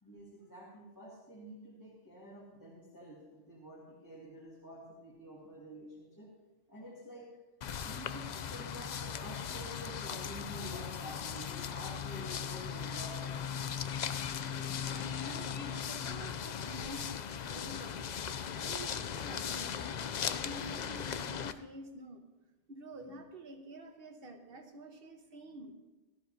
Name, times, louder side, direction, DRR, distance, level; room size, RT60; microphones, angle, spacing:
voice 1, 0.0-6.3 6.7-7.3 7.8-13.4 23.1-23.2, equal, 20° left, -7 dB, 2.2 m, -49 dB
sound 1, 7.6-21.5, left 8 dB, 55° left, 0.5 m, -38 dB
voice 2, 14.5-18.1 18.6-22.3 22.7-25.7, right 1 dB, 60° right, 4 dB, 1.4 m, -49 dB
17.0 x 13.0 x 2.8 m, 1.1 s
omnidirectional pair, 1.1 m